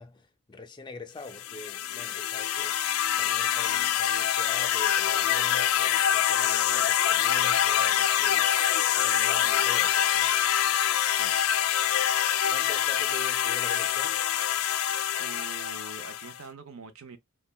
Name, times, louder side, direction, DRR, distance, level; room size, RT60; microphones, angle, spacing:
voice 1, 0.0-10.3 12.5-14.2, left 2 dB, 20° left, 0.4 m, -45 dB
sound 1, 1.3-16.4, left 10 dB, 90° left, 0.3 m, -25 dB
voice 2, 15.2-17.2, right 4 dB, 70° right, 0.6 m, -44 dB
3.2 x 2.2 x 2.3 m
head